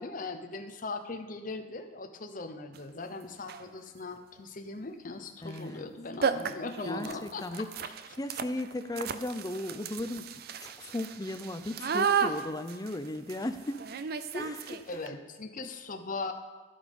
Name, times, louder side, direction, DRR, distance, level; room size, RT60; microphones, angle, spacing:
voice 1, 0.0-7.5 14.9-16.3, left 3 dB, 50° left, 6 dB, 0.8 m, -39 dB
sound 1, 2.7-2.8 3.4-3.7 5.5-5.6 5.9-6.0 6.2-15.1, right 6 dB, 60° right, 0.5 m, -34 dB
voice 2, 5.4-5.9 6.3-7.7 8.2-13.8 14.3-14.8, left 1 dB, 20° left, 10 dB, 0.6 m, -36 dB
11.5 x 8.6 x 5.3 m, 1.2 s
head